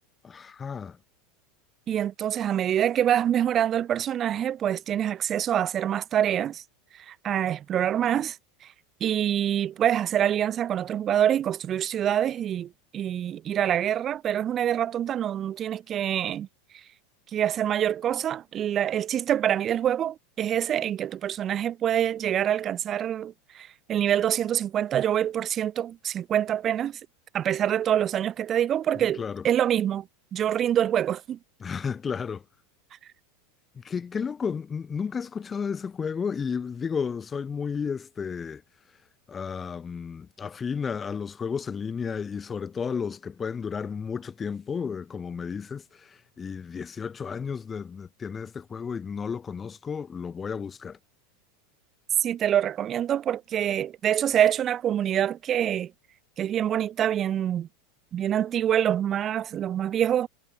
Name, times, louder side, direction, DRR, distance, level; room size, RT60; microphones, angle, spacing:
voice 1, 0.2-1.0 29.2-29.4 31.6-32.4 33.7-38.6 39.3-51.0, left 6 dB, 20° left, 3.0 m, -32 dB
voice 2, 1.9-6.6 6.9-8.4 9.0-16.5 17.3-27.0 27.3-30.1 30.3-31.4 52.2-55.9 56.4-57.7 58.1-60.3, right 10 dB, 30° right, 0.8 m, -26 dB
supercardioid pair, 130°, 0 cm